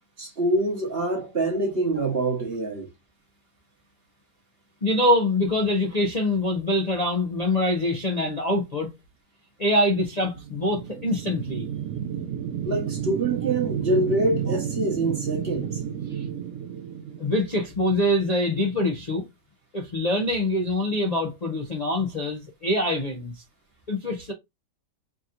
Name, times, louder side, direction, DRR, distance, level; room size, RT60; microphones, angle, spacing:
voice 1, 0.2-2.9 12.6-15.8, right 2 dB, 40° right, 1.1 m, -25 dB
voice 2, 4.8-8.9 9.6-11.7 16.1-16.3 17.2-19.2 19.7-23.3 23.9-24.3, left 1 dB, 65° left, 0.4 m, -24 dB
sound 1, 10.2-17.9, right 9 dB, 70° right, 0.8 m, -31 dB
5.0 x 2.8 x 2.5 m
omnidirectional pair, 1.8 m